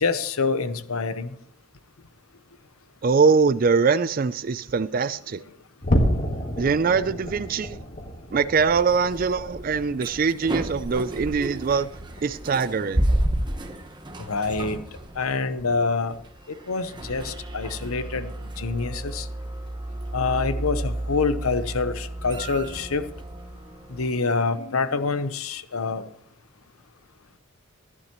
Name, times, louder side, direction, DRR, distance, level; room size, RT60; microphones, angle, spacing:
voice 1, 0.0-1.3 14.2-14.8 15.2-16.1 16.7-18.3 18.6-19.3 20.1-23.0 23.9-26.0, left 4 dB, 85° left, 0.8 m, -26 dB
voice 2, 3.0-5.4 6.6-7.8 8.3-11.9 12.2-13.1, right 5 dB, 40° right, 0.3 m, -22 dB
sound 1, 5.8-12.5 12.8-13.1 13.5-13.7 14.2-14.4, equal, 35° left, 1.5 m, -30 dB
sound 2, 8.6-24.1, right 1 dB, 20° right, 1.0 m, -32 dB
14.5 x 11.0 x 3.0 m
head